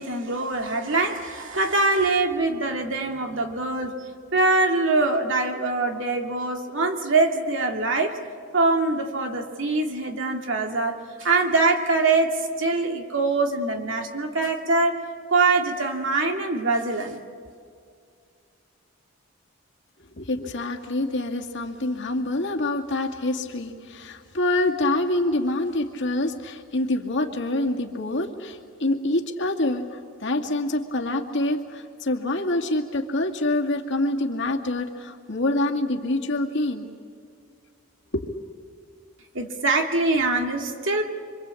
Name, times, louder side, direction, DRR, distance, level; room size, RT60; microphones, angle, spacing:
voice 1, 0.0-4.0 4.3-8.2 8.5-15.0 15.3-17.2 39.3-41.0, right 3 dB, 60° right, 3 dB, 2.6 m, -23 dB
voice 2, 20.2-36.9 38.1-38.3, left 2 dB, 55° left, 2 dB, 2.3 m, -26 dB
26.5 x 25.0 x 8.4 m, 2.3 s
head